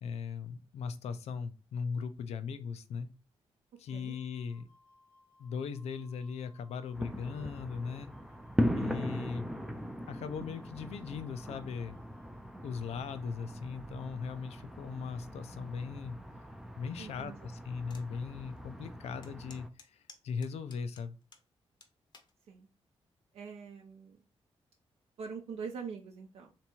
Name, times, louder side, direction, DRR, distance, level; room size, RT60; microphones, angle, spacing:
voice 1, 0.0-3.1 3.8-4.7 5.4-8.1 8.7-9.5 10.1-12.0 12.6-16.2 16.8-19.7 20.2-21.1, left 6 dB, 85° left, 11 dB, 0.5 m, -39 dB
Wind instrument woodwind instrument, 3.9-12.9, left 2 dB, 25° right, 0.9 m, -64 dB
sound 1, 6.9-19.7, equal, 5° right, 0.3 m, -39 dB
voice 2, 17.0-17.5 22.5-22.7 23.3-24.2 25.2-26.5, right 6 dB, 75° right, 1 dB, 0.6 m, -43 dB
sound 2, 17.9-18.1 18.6-18.7 19.2-21.5 21.8-22.3 23.0-23.3, left 4 dB, 45° left, 0.7 m, -56 dB
3.4 x 2.9 x 4.4 m, 0.31 s
wide cardioid pair, 160°, 11 cm